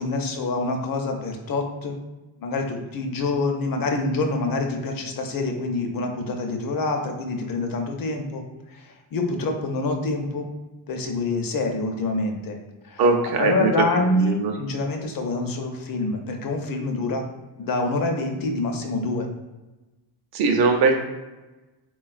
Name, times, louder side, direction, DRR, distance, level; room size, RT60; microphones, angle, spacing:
voice 1, 0.0-2.0 2.4-8.4 9.1-10.5 10.9-12.6 12.9-13.0 13.4-17.2 17.6-19.3, left 2 dB, 45° left, 4 dB, 0.6 m, -26 dB
voice 2, 13.0-13.8 14.1-14.5 20.3-21.0, right 4 dB, 50° right, 2 dB, 0.6 m, -20 dB
3.5 x 2.3 x 2.4 m, 1.1 s
cardioid pair, 70°, 48 cm